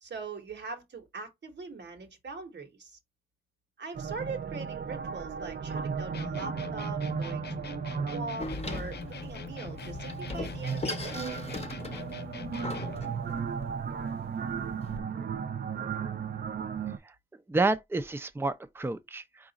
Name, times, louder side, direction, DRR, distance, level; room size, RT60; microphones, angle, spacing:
voice 1, 0.0-3.0 3.8-11.5, right 4 dB, 90° right, 1.1 m, -42 dB
sound 1, 3.9-17.0, right 6 dB, 65° right, 0.5 m, -35 dB
sound 2, 6.1-13.1, left 8 dB, 70° left, 0.4 m, -43 dB
Door, 8.4-15.0, left 3 dB, 35° left, 0.7 m, -40 dB
voice 2, 17.5-19.5, right 3 dB, 15° right, 0.4 m, -30 dB
4.7 x 2.5 x 4.0 m
wide cardioid pair, 75°, 18 cm